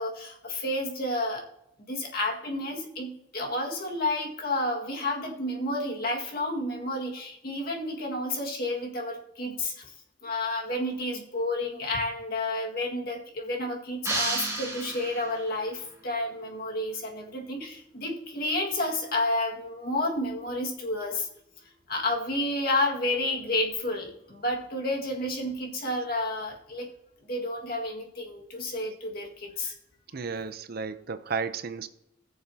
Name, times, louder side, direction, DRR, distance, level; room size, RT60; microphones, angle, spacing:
voice 1, 0.0-1.4 1.9-9.9 10.2-21.3 21.9-26.9 27.3-29.7, left 1 dB, 55° left, 0 dB, 1.9 m, -30 dB
sound 1, 14.0-15.6, right 2 dB, 15° right, 4.0 m, -31 dB
voice 2, 30.1-31.9, right 5 dB, 55° right, 12 dB, 0.6 m, -33 dB
20.0 x 6.8 x 2.8 m, 0.82 s
head